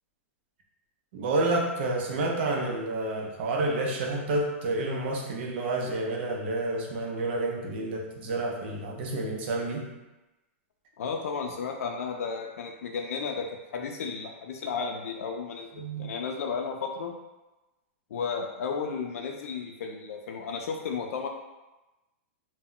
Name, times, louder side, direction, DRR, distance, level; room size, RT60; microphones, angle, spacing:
voice 1, 1.1-9.9 15.8-16.1, right 2 dB, 50° right, 0 dB, 0.5 m, -29 dB
voice 2, 11.0-13.5 13.7-17.1 18.1-21.3, left 5 dB, 85° left, 2 dB, 0.3 m, -33 dB
2.1 x 2.1 x 3.7 m, 1.1 s
supercardioid pair, 165°, 8 cm